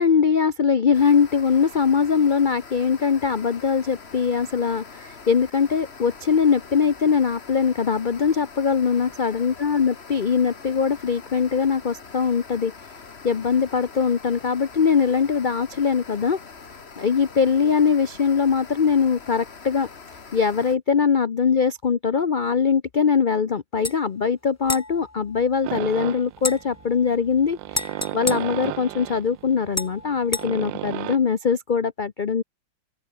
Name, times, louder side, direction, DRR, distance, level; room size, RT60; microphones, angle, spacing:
voice 1, 0.0-12.7 13.2-16.4 17.0-19.9 20.3-32.4, left 6 dB, 80° left, 0.4 m, -22 dB
sound 1, 0.9-20.8, left 5 dB, 35° left, 1.8 m, -43 dB
sound 2, 23.8-24.0 24.6-25.9 26.4-29.3 29.7-30.5, left 2 dB, 15° left, 0.6 m, -33 dB
sound 3, 25.6-31.2, right 16 dB, 80° right, 1.3 m, -34 dB
open air
omnidirectional pair, 2.0 m